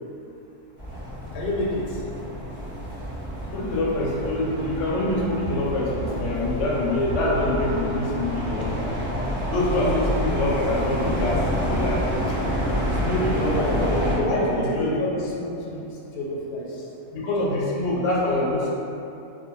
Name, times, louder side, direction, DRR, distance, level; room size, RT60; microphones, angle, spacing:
sound 1, 0.8-14.2, equal, 15° right, 0.5 m, -28 dB
voice 1, 1.3-2.1 14.2-16.9, left 1 dB, 85° left, -4 dB, 1.1 m, -29 dB
voice 2, 3.5-8.9 9.5-12.0 12.3-12.4 13.0-14.9 17.1-18.7, left 1 dB, 65° left, -5 dB, 0.7 m, -25 dB
2.5 x 2.1 x 2.9 m, 2.8 s
omnidirectional pair, 1.5 m